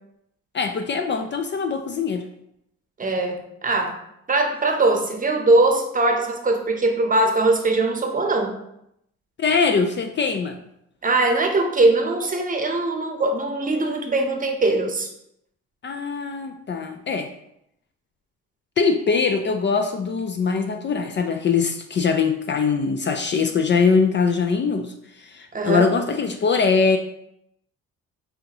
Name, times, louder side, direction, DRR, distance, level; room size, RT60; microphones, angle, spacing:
voice 1, 0.5-2.3 9.4-10.6 15.8-17.3 18.8-27.0, left 5 dB, 40° left, 6 dB, 0.4 m, -22 dB
voice 2, 3.0-4.0 4.3-8.6 11.0-15.1 25.5-25.9, right 2 dB, 25° right, 3 dB, 0.7 m, -21 dB
5.5 x 2.7 x 2.9 m, 0.78 s
cardioid pair, 90°, 30 cm